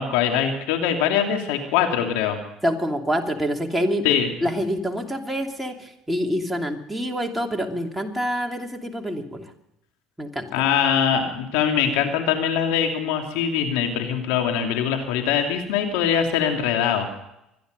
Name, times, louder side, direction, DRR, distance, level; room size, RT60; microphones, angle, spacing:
voice 1, 0.0-2.4 4.0-4.3 10.5-17.1, left 8 dB, 80° left, 3 dB, 2.8 m, -22 dB
voice 2, 2.6-9.5 10.2-10.5, equal, 5° right, 1 dB, 2.8 m, -26 dB
25.0 x 10.5 x 5.3 m, 0.83 s
supercardioid pair, 90°, 0 cm